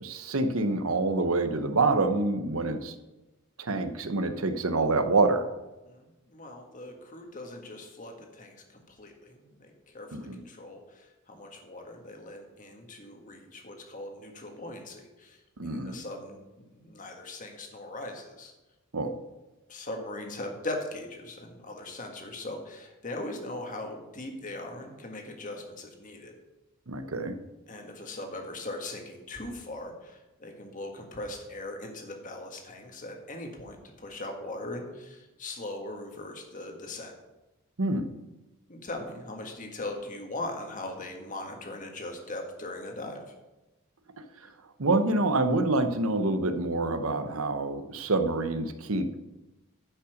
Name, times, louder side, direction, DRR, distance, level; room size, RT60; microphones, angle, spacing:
voice 1, 0.0-2.9 3.6-5.4 10.1-10.4 15.6-16.0 18.9-19.1 26.9-27.3 37.8-38.0 44.8-49.2, right 2 dB, 80° right, 9 dB, 1.0 m, -26 dB
voice 2, 5.8-18.5 19.7-26.4 27.7-37.1 38.7-43.2, left 2 dB, 35° left, 3 dB, 1.7 m, -40 dB
10.5 x 5.8 x 6.5 m, 1.1 s
head